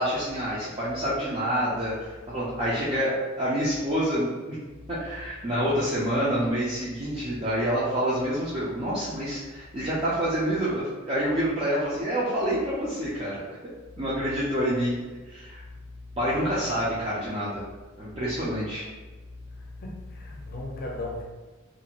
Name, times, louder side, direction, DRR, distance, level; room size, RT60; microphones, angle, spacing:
voice 1, 0.0-4.6 4.9-13.4 14.0-15.0 15.3-15.6 16.2-17.6 18.0-18.9, equal, 25° right, -9 dB, 0.5 m, -27 dB
voice 2, 16.4-16.8 19.5-21.2, left 2 dB, 45° left, -1 dB, 0.6 m, -37 dB
2.6 x 2.4 x 2.9 m, 1.3 s
head